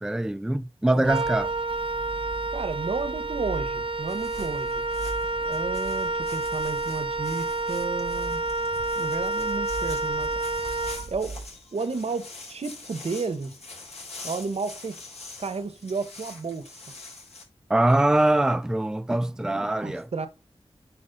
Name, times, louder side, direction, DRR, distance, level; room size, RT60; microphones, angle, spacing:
voice 1, 0.0-1.5 17.7-20.1, right 1 dB, 5° right, 0.4 m, -23 dB
Wind instrument woodwind instrument, 1.0-11.5, right 2 dB, 55° right, 0.7 m, -29 dB
voice 2, 2.5-4.8 5.4-8.4 8.9-10.3 11.1-13.6 14.2-14.9 15.4-16.8 19.8-20.3, right 4 dB, 75° right, 1.1 m, -32 dB
sound 1, 4.1-17.4, left 3 dB, 80° left, 4.3 m, -45 dB
9.7 x 4.3 x 4.0 m
wide cardioid pair, 95°, 11 cm